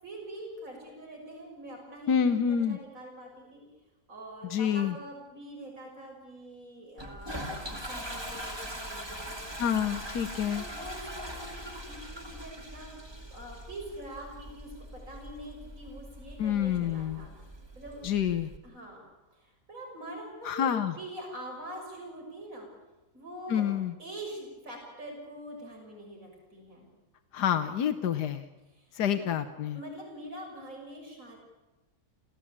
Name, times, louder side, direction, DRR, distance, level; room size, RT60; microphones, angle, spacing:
voice 1, 0.0-3.6 4.1-9.3 10.4-12.9 13.3-18.1 18.6-19.0 19.3-20.7 21.0-22.7 23.1-23.7 24.0-26.9 28.7-29.2 29.7-31.4, right 1 dB, 55° right, 0 dB, 6.7 m, -44 dB
voice 2, 2.1-2.8 4.5-5.0 9.6-10.6 16.4-17.2 18.0-18.5 20.4-20.9 23.5-23.9 27.3-28.4 28.9-29.8, left 8 dB, 85° left, 8 dB, 1.6 m, -28 dB
Toilet flush, 7.0-18.6, equal, 15° right, 2.7 m, -42 dB
29.0 x 15.5 x 8.8 m, 1.1 s
omnidirectional pair, 1.7 m